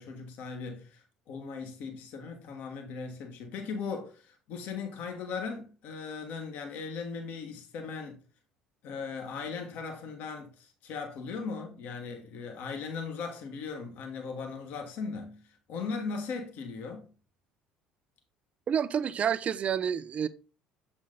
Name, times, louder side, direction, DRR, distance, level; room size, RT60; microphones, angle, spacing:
voice 1, 0.0-8.2 8.8-15.4 15.7-17.1, left 5 dB, 60° left, 1.5 m, -38 dB
voice 2, 18.7-20.3, right 8 dB, 40° right, 0.5 m, -29 dB
7.4 x 4.4 x 3.8 m
figure-of-eight pair, 60°, 3 cm